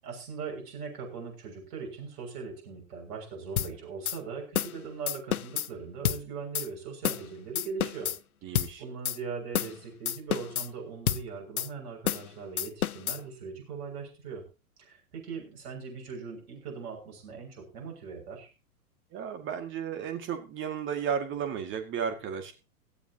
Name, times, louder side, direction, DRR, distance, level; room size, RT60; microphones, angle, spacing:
voice 1, 0.0-8.2 8.4-8.5 8.8-14.5 14.8-18.5, right 5 dB, 45° right, 0 dB, 6.8 m, -40 dB
sound 1, 3.6-3.7 4.1-4.2 4.6-4.8 5.1-5.7 6.1-6.2 6.6-6.7 7.0-7.3 7.6-8.2 8.6-8.7 9.1-9.2 9.5-9.8 10.1-10.7 11.1-11.2 11.6-11.7 12.1-12.3 12.6-13.2, left 10 dB, 75° left, 0.6 m, -29 dB
voice 2, 8.4-8.8 19.1-22.5, right 7 dB, 25° right, 7 dB, 2.3 m, -33 dB
16.5 x 13.0 x 3.0 m, 0.30 s
figure-of-eight pair, 100°, 44 cm